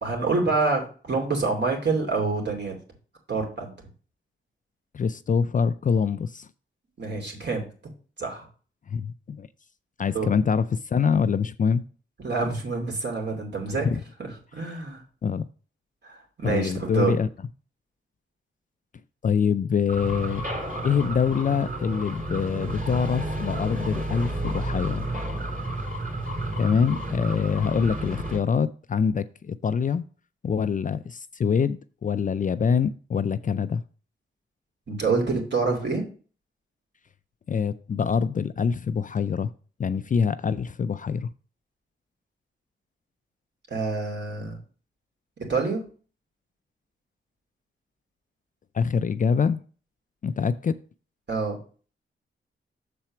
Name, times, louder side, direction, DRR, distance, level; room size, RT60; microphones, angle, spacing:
voice 1, 0.0-2.8 3.3-3.7 7.0-7.6 8.2-8.5 10.1-10.3 12.2-13.9 14.2-15.0 16.0-17.1 34.9-36.0 43.7-44.6 45.5-45.8 51.3-51.6, right 4 dB, 55° right, 2.6 m, -27 dB
voice 2, 4.9-6.5 8.9-9.5 10.0-11.8 13.8-14.0 15.2-15.5 16.4-17.3 19.2-20.4 20.8-25.1 26.6-30.0 30.4-33.8 37.5-39.5 39.8-41.3 48.7-49.6 50.2-50.8, left 6 dB, 40° left, 0.4 m, -25 dB
sound 1, 19.9-28.4, right 1 dB, 40° right, 2.8 m, -31 dB
6.9 x 4.4 x 5.9 m
wide cardioid pair, 95°, 21 cm